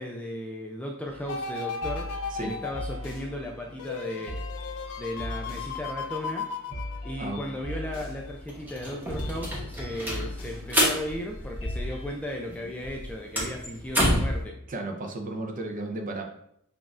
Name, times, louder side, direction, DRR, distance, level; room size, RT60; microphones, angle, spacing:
voice 1, 0.0-2.1 2.4-4.5 5.0-6.5 7.0-14.5, left 1 dB, 5° left, 0 dB, 0.3 m, -36 dB
sound 1, 1.1-12.1, left 1 dB, 65° left, 1.3 m, -40 dB
sound 2, 1.3-7.5 8.0-8.1, left 5 dB, 85° left, 0.4 m, -36 dB
sound 3, 7.9-8.0 8.3-12.2 12.5-14.4, equal, 10° right, 0.9 m, -28 dB
voice 2, 14.7-16.3, right 2 dB, 40° right, 3 dB, 0.6 m, -34 dB
5.9 x 2.3 x 2.5 m, 0.73 s
head